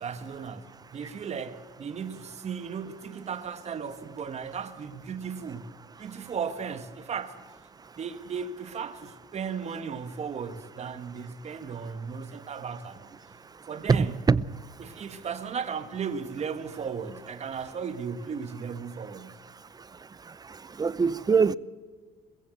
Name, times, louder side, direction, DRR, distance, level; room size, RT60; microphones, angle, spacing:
voice 1, 0.0-5.7 6.0-7.4 8.0-13.1 13.7-14.1 14.8-19.4, right 6 dB, 40° right, 1.5 m, -36 dB
voice 2, 13.9-14.4 20.8-21.5, right 5 dB, 25° right, 0.6 m, -22 dB
22.0 x 15.5 x 7.9 m
cardioid pair, 110°, 17 cm